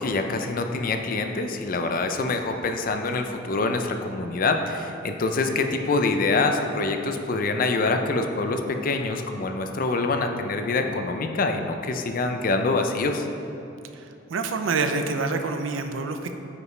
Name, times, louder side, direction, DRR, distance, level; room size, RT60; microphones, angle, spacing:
voice 1, 0.0-13.3, left 3 dB, 45° left, 5 dB, 0.5 m, -25 dB
voice 2, 14.3-16.3, right 4 dB, 90° right, 7 dB, 0.5 m, -26 dB
9.4 x 5.1 x 3.2 m, 2.9 s
head